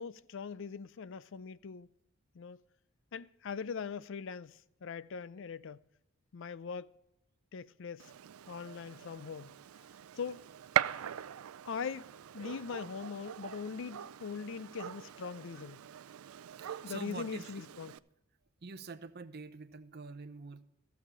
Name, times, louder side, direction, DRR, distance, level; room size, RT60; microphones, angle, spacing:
voice 1, 0.0-1.9 2.3-2.6 3.1-5.8 6.3-6.9 7.5-8.1 8.5-9.6 10.2-10.5 11.6-15.8 16.8-17.9, left 5 dB, 60° left, 0.5 m, -41 dB
Gunshot gunfire, 8.0-18.0, right 10 dB, 85° right, 0.4 m, -41 dB
voice 2, 16.6-17.6 18.6-20.6, right 4 dB, 50° right, 0.7 m, -46 dB
15.0 x 7.2 x 4.7 m
head